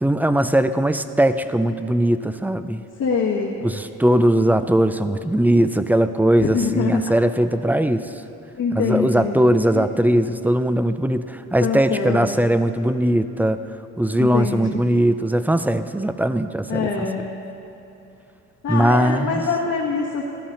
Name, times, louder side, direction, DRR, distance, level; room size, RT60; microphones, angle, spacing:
voice 1, 0.0-2.8 3.6-8.1 8.7-13.6 14.0-17.3 18.7-19.5, right 1 dB, 5° right, 11 dB, 0.4 m, -20 dB
voice 2, 3.0-3.6 6.4-7.0 8.6-9.8 11.6-12.3 14.2-15.1 16.7-17.3 18.6-20.2, left 5 dB, 60° left, -3 dB, 1.4 m, -24 dB
13.0 x 12.5 x 3.9 m, 2.9 s
cardioid pair, 90°, 30 cm